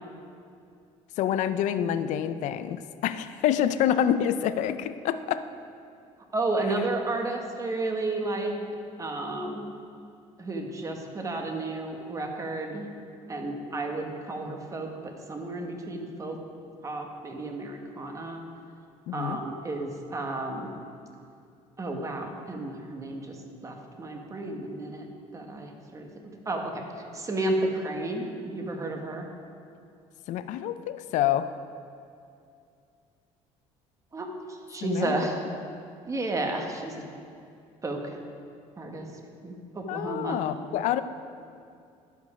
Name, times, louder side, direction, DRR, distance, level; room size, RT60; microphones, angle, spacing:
voice 1, 1.2-5.4 19.1-19.4 30.3-31.5 34.8-35.2 35.5-35.6 39.9-41.0, left 10 dB, 70° left, 12 dB, 0.4 m, -27 dB
voice 2, 6.3-8.6 9.0-9.7 10.4-12.9 13.3-16.4 16.8-18.4 19.1-20.7 21.8-25.1 25.3-26.8 27.1-29.2 34.1-35.4 36.1-37.0 37.8-38.2 38.8-39.1 39.4-40.4, right 2 dB, 25° right, 3 dB, 1.2 m, -32 dB
11.5 x 5.3 x 4.9 m, 2.4 s
cardioid pair, 110°, 13 cm